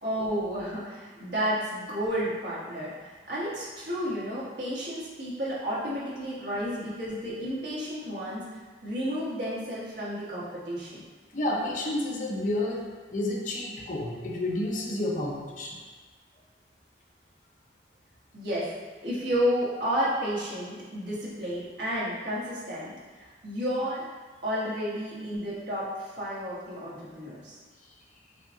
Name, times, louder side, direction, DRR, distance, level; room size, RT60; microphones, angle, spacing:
voice 1, 0.0-8.5 8.8-11.0 18.3-18.7 19.0-24.0 24.4-27.6, equal, 70° right, -8 dB, 1.4 m, -31 dB
voice 2, 11.3-15.8, left 1 dB, 45° left, -1 dB, 0.6 m, -30 dB
5.6 x 2.4 x 3.6 m, 1.4 s
head